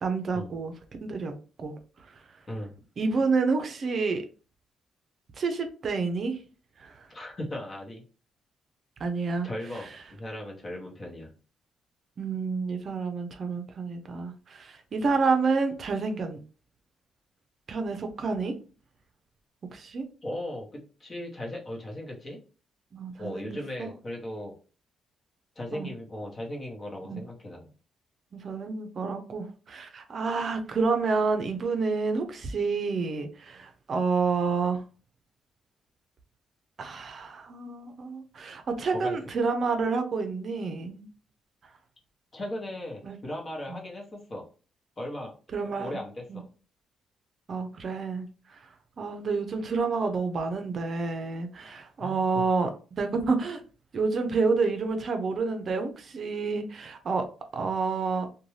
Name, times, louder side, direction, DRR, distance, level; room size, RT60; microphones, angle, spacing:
voice 1, 0.0-1.3 1.6-1.7 2.0-2.1 3.0-4.2 5.4-6.4 6.8-7.1 9.0-9.5 12.2-16.4 17.7-18.5 19.7-20.0 22.9-23.9 25.7-25.9 27.0-27.2 28.3-34.8 36.8-41.1 43.0-43.2 43.7-43.8 45.5-46.0 46.3-46.4 47.5-48.6 49.0-52.7 53.0-53.6 53.9-57.3 57.5-58.3, right 4 dB, 50° right, 6 dB, 0.5 m, -29 dB
voice 2, 7.1-8.0 9.4-11.3 20.2-22.4 23.2-24.5 25.6-27.7 38.9-39.2 42.3-44.4 45.0-45.3 45.8-46.4 52.0-52.4, left 1 dB, 35° left, 0 dB, 1.0 m, -37 dB
2.6 x 2.2 x 3.1 m, 0.36 s
cardioid pair, 90°, 0 cm